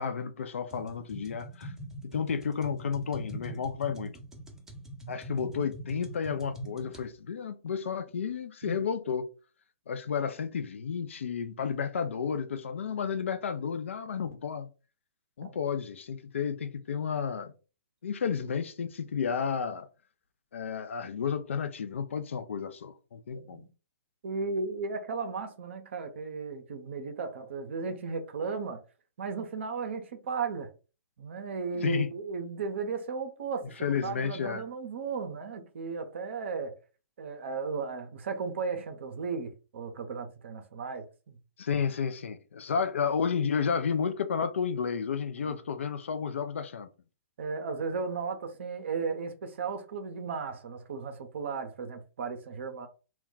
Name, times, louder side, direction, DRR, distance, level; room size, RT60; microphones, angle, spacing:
voice 1, 0.0-1.7 2.0-4.2 5.1-9.3 9.9-14.7 15.4-17.5 18.0-19.9 20.5-23.6 31.7-32.1 33.8-34.6 41.6-46.9, left 6 dB, 65° left, 0.4 m, -32 dB
sound 1, 0.7-7.0, right 1 dB, 5° right, 0.6 m, -42 dB
voice 2, 23.3-23.7 24.2-28.8 29.2-30.7 31.2-36.8 37.2-41.4 45.4-45.5 47.4-52.9, right 5 dB, 60° right, 0.6 m, -35 dB
2.2 x 2.2 x 3.7 m
figure-of-eight pair, 115°, 7 cm